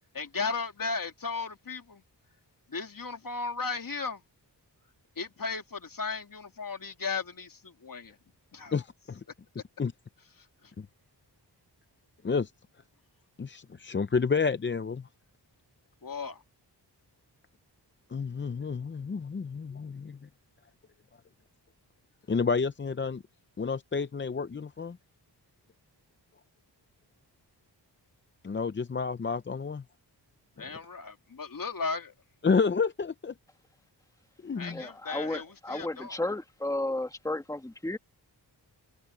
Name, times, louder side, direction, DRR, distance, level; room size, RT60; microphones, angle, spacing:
voice 1, 0.1-2.0 2.7-4.2 5.2-8.2 8.5-8.7 10.4-10.5 16.0-16.4 30.6-32.1 34.6-36.2, left 4 dB, 50° left, 2.7 m, -35 dB
voice 2, 8.7-9.2 9.8-9.9 10.8-10.9 12.2-12.5 13.4-15.1 18.1-20.3 22.3-23.2 23.6-25.0 28.4-29.8 30.6-30.7 32.4-33.3 34.4-34.8, left 5 dB, 30° left, 0.5 m, -30 dB
voice 3, 34.7-38.0, left 2 dB, 10° left, 1.6 m, -33 dB
wide cardioid pair, 110°, 43 cm